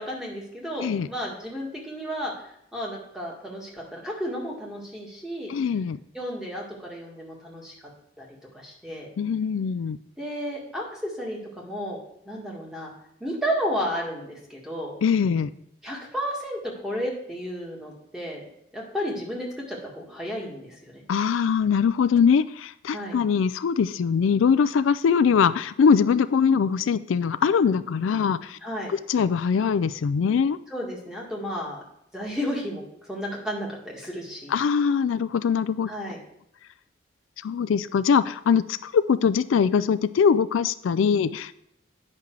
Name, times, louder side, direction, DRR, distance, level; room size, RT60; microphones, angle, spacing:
voice 1, 0.0-2.3 2.7-5.5 6.1-7.7 8.2-8.3 8.5-9.1 10.2-12.0 12.3-12.9 13.2-14.9 15.8-18.4 18.7-21.0 22.9-23.2 28.6-28.9 30.7-31.8 32.1-34.6 35.9-36.2, equal, 5° right, -3 dB, 1.9 m, -32 dB
voice 2, 5.5-6.0 9.2-10.0 15.0-15.5 21.1-28.6 28.9-30.6 34.5-35.9 37.4-41.5, left 6 dB, 90° left, 14 dB, 0.4 m, -22 dB
9.9 x 5.8 x 4.7 m, 0.76 s
head